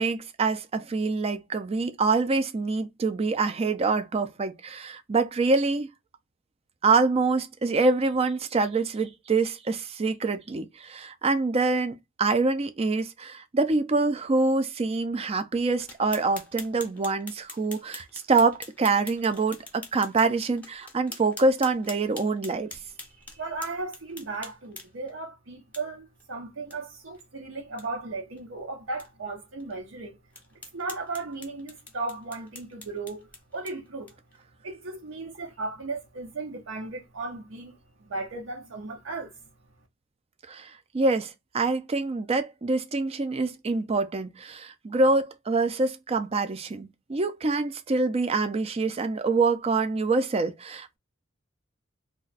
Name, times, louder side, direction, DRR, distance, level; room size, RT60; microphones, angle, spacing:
voice 1, 0.0-5.9 6.8-22.8 40.5-51.0, right 3 dB, 30° right, 0.4 m, -25 dB
sound 1, 15.8-25.1 25.7-25.8 26.2-26.3 26.7-26.8 27.1-27.2 27.6-27.9 28.4-28.5 29.0-29.1 29.6-29.7 30.3-34.4, left 2 dB, 5° left, 0.7 m, -45 dB
voice 2, 23.1-30.2 30.7-34.2 34.6-39.5, right 3 dB, 75° right, 0.7 m, -36 dB
2.4 x 2.2 x 3.8 m
head